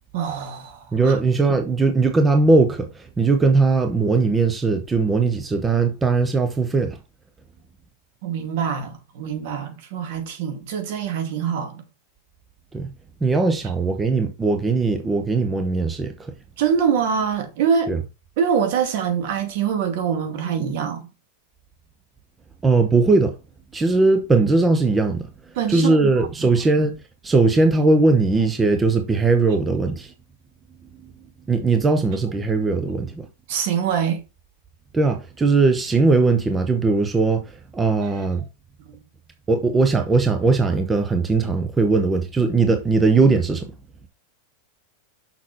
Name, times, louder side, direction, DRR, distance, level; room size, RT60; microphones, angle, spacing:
voice 1, 0.1-1.2 1.5-1.6 8.2-11.8 13.6-13.7 16.6-17.9 18.4-21.1 25.5-26.5 33.5-34.2, right 7 dB, 55° right, 2.4 m, -24 dB
voice 2, 0.9-7.0 12.7-12.9 13.2-16.3 17.9-18.0 22.6-23.4 23.7-25.3 25.7-27.0 27.2-30.1 31.5-33.3 34.9-38.4 39.5-43.7, right 3 dB, 10° right, 0.8 m, -19 dB
6.4 x 5.9 x 4.3 m
supercardioid pair, 160°, 0 cm